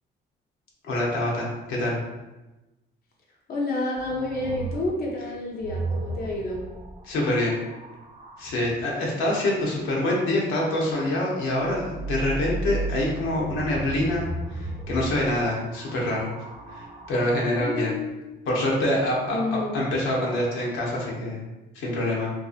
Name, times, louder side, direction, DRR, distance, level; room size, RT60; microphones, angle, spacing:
voice 1, 0.8-2.0 7.0-7.6 8.4-14.2 14.5-16.3 16.7-17.9 18.5-21.4 21.7-22.3, left 1 dB, 85° left, -3 dB, 0.7 m, -26 dB
voice 2, 3.5-6.6 17.5-18.2 19.3-19.9, left 2 dB, 50° left, -1 dB, 0.5 m, -29 dB
sound 1, 4.0-8.6 11.6-17.7 18.7-19.3, right 2 dB, 35° right, 0.4 m, -35 dB
2.6 x 2.3 x 2.4 m, 1.1 s
cardioid pair, 90°, 20 cm